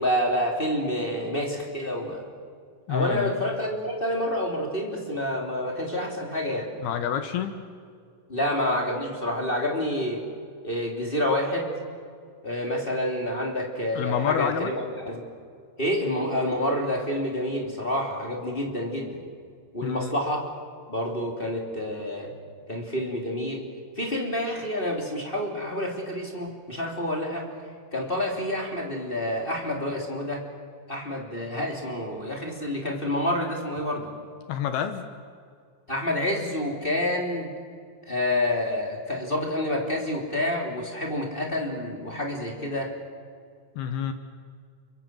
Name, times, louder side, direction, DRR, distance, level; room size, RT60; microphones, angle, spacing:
voice 1, 0.0-2.2 2.9-6.7 8.3-10.2 10.6-11.7 12.4-15.3 15.8-19.2 19.7-20.4 20.9-22.3 22.7-23.6 24.0-27.5 27.9-30.4 30.9-34.1 35.9-37.5 38.1-42.9, left 1 dB, 15° left, 0 dB, 2.8 m, -28 dB
voice 2, 2.9-3.3 6.8-7.6 13.9-14.7 19.8-20.1 34.5-35.1 43.8-44.1, left 8 dB, 70° left, 9 dB, 2.8 m, -28 dB
29.5 x 23.5 x 7.8 m, 2.2 s
omnidirectional pair, 5.2 m